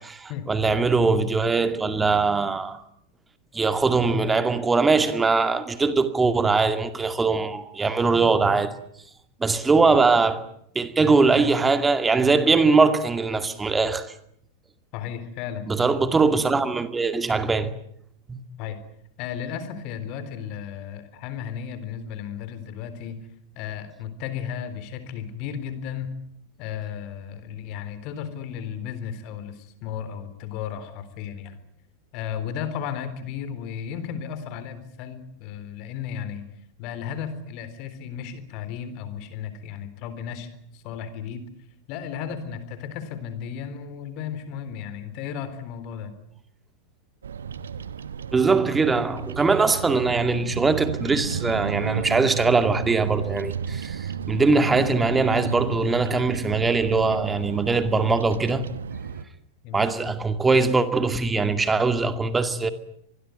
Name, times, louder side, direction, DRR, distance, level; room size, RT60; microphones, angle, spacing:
voice 1, 0.0-2.8 3.5-8.7 9.4-10.4 10.7-14.1 15.7-17.7 18.3-18.4 48.3-58.7 59.7-62.7, right 4 dB, 15° right, 2.3 m, -21 dB
voice 2, 14.9-15.7 18.6-18.8 19.2-23.2 23.6-26.2 26.6-31.6 32.1-36.5 36.8-41.5 41.9-46.1 59.6-59.9, left 8 dB, 40° left, 3.8 m, -34 dB
Bird vocalization bird call bird song, 47.2-59.2, right 7 dB, 65° right, 1.2 m, -33 dB
25.5 x 21.0 x 9.4 m
figure-of-eight pair, 90°, 0 cm